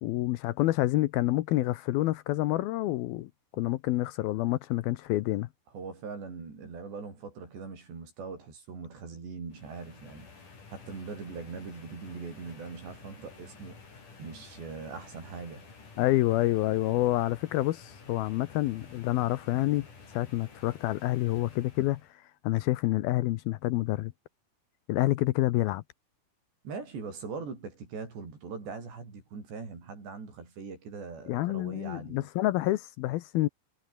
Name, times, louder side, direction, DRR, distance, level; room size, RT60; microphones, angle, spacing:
voice 1, 0.0-3.3 3.6-5.5 16.0-22.0 22.4-24.1 24.9-25.8 31.3-33.5, left 16 dB, 75° left, 2.4 m, -28 dB
voice 2, 5.7-10.3 10.7-13.8 14.2-15.7 26.6-32.3, right 5 dB, 85° right, 9.4 m, -41 dB
sound 1, 9.5-22.1, left 4 dB, 50° left, 7.2 m, -51 dB
omnidirectional pair, 4.8 m